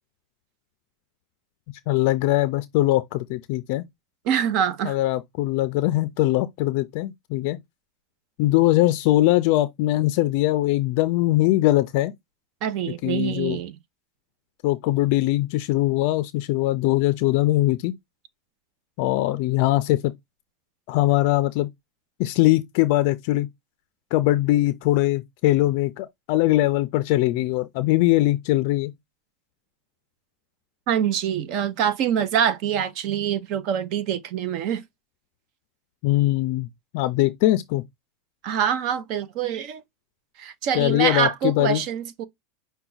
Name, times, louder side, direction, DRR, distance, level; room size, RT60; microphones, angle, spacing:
voice 1, 1.9-3.8 4.8-7.6 8.4-12.1 13.0-13.6 14.6-17.9 19.0-20.1 20.9-21.7 22.2-23.5 24.1-28.9 36.0-36.7 36.9-37.8 40.7-41.8, left 16 dB, 50° left, 0.4 m, -21 dB
voice 2, 4.3-5.0 12.6-13.8 30.9-34.8 38.4-39.8 40.4-42.2, right 9 dB, 45° right, 0.6 m, -25 dB
5.8 x 2.2 x 3.9 m
supercardioid pair, 165°, 0 cm